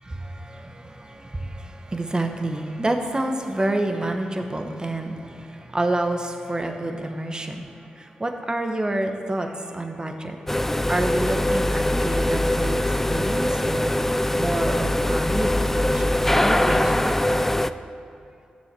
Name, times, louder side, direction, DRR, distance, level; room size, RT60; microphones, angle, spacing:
voice 1, 0.0-10.4 10.9-12.8 13.1-13.9 14.3-16.0 16.4-17.2, right 1 dB, 25° right, 5 dB, 1.1 m, -28 dB
sound 1, 10.5-17.7, left 1 dB, 10° left, 0.4 m, -22 dB
9.6 x 7.0 x 6.1 m, 2.6 s
supercardioid pair, 45°, 3 cm